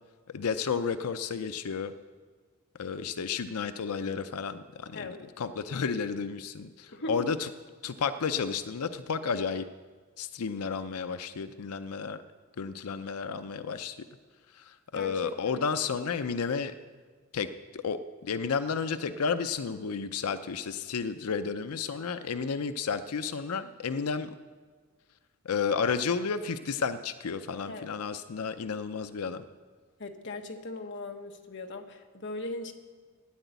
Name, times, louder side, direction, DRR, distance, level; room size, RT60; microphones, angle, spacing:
voice 1, 0.3-1.9 2.8-7.5 7.8-9.7 10.2-12.2 12.6-14.1 14.5-16.7 17.3-17.5 17.7-24.3 25.4-29.4, left 5 dB, 80° left, 11 dB, 0.5 m, -32 dB
voice 2, 6.9-7.3 14.9-15.6 27.7-27.9 30.0-32.7, left 2 dB, 55° left, 5 dB, 1.2 m, -39 dB
13.0 x 10.0 x 8.1 m, 1.5 s
head